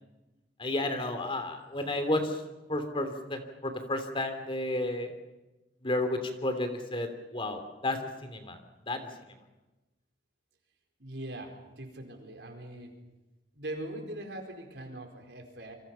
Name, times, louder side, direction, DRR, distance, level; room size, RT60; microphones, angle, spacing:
voice 1, 0.6-2.4 2.7-5.1 5.8-8.6 8.9-9.1, left 1 dB, 30° left, 7 dB, 3.0 m, -32 dB
voice 2, 11.0-12.9 13.5-15.7, right 1 dB, 75° right, 4 dB, 4.6 m, -41 dB
28.5 x 25.0 x 5.7 m, 1.1 s
head